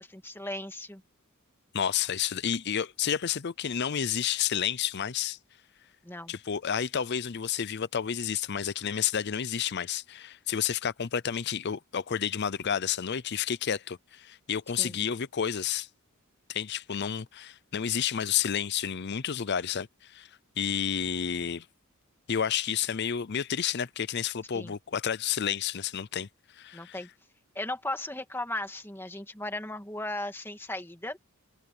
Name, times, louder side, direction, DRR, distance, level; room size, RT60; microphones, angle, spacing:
voice 1, 0.1-1.0 6.0-6.3 14.8-14.9 24.5-24.7 26.7-27.1 27.6-31.2, left 1 dB, 10° left, 2.0 m, -36 dB
voice 2, 1.7-5.4 6.3-15.9 16.5-20.3 20.6-21.7 22.3-26.3 26.5-27.0, left 8 dB, 50° left, 0.5 m, -30 dB
head